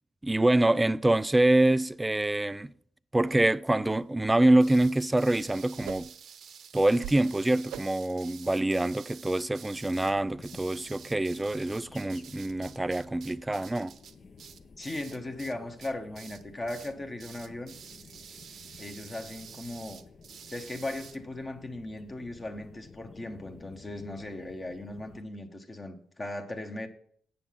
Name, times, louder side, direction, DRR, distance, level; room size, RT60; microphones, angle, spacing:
voice 1, 0.2-2.7 3.1-6.1 6.7-14.0, right 1 dB, 10° right, 0.3 m, -25 dB
sound 1, 3.3-3.4 3.8-4.0 4.4-4.6 5.0-6.3 6.7-7.3 7.7-8.1 8.5-8.6, right 12 dB, 85° right, 0.4 m, -45 dB
sound 2, 4.6-15.5 15.8-16.4 16.7-16.9 17.2-21.2, right 7 dB, 65° right, 0.8 m, -49 dB
sound 3, 9.7-25.2, left 4 dB, 40° left, 0.7 m, -53 dB
voice 2, 14.8-17.7 18.8-20.1 20.5-26.9, left 2 dB, 25° left, 1.1 m, -38 dB
8.3 x 7.0 x 5.7 m
cardioid pair, 90°, 0 cm